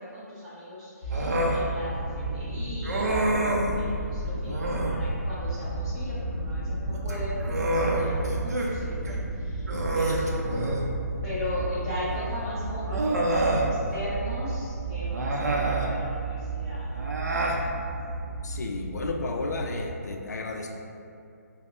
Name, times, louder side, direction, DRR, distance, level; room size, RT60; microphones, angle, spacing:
voice 1, 0.0-10.8 11.2-16.9, equal, 5° right, -12 dB, 0.9 m, -37 dB
sound 1, 1.0-19.9, right 2 dB, 30° left, 0.8 m, -33 dB
Human voice, 1.1-1.6 2.8-3.7 4.5-5.0 6.9-8.7 9.1-9.2 9.7-10.9 12.1-12.2 12.9-13.7 15.1-15.9 17.0-17.6, right 1 dB, 65° right, 0.5 m, -27 dB
voice 2, 18.4-20.7, left 3 dB, 75° left, 2 dB, 0.4 m, -33 dB
5.2 x 2.1 x 2.4 m, 2.5 s
hypercardioid pair, 150°, 9 cm